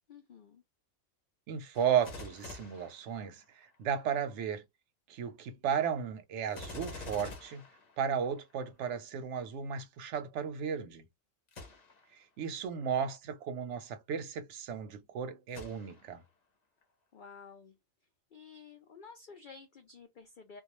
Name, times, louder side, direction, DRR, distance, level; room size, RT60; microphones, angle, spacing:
voice 1, 0.1-0.6 17.1-17.8 18.3-20.6, left 5 dB, 85° left, 0.4 m, -52 dB
voice 2, 1.5-4.6 5.1-7.6 8.0-11.1 12.1-16.2, right 8 dB, 65° right, 0.8 m, -34 dB
Gunshot gunfire, 1.7-3.7 6.5-8.6 11.5-12.1 12.8-12.9 15.5-16.3 16.8-16.9, left 3 dB, 45° left, 0.6 m, -47 dB
2.3 x 2.2 x 2.9 m
omnidirectional pair, 1.4 m